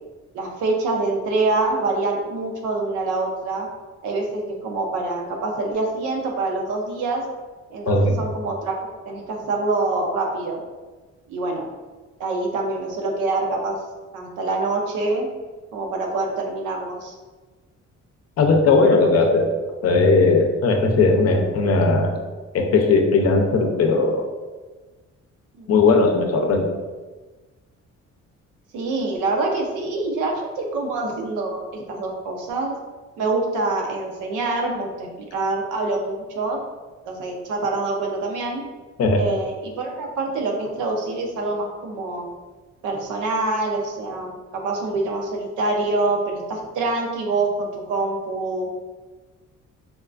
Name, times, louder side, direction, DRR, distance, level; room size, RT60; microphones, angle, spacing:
voice 1, 0.3-3.7 4.0-7.2 7.7-8.8 9.1-10.6 11.3-11.7 12.2-13.8 14.1-15.3 15.7-17.1 25.6-25.7 28.7-32.8 33.2-36.6 37.1-38.6 39.2-42.3 42.8-48.7, right 3 dB, 90° right, 1 dB, 0.6 m, -25 dB
voice 2, 18.4-19.5 19.8-22.1 22.5-24.3 25.7-26.7 39.0-39.2, left 3 dB, 55° left, 3 dB, 0.6 m, -18 dB
3.6 x 2.3 x 2.4 m, 1.3 s
cardioid pair, 90°, 30 cm